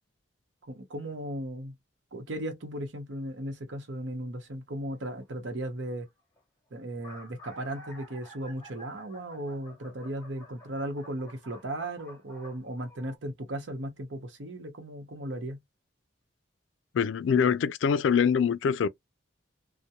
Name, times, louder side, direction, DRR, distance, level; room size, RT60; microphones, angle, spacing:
voice 1, 0.7-1.8 2.1-6.1 6.7-15.6, right 1 dB, 85° right, 0.8 m, -36 dB
sound 1, 4.9-5.2 6.1-6.2 6.4-6.5 6.8-13.2, equal, 15° left, 1.0 m, -51 dB
voice 2, 16.9-18.9, left 7 dB, 90° left, 0.4 m, -24 dB
2.8 x 2.1 x 2.3 m
head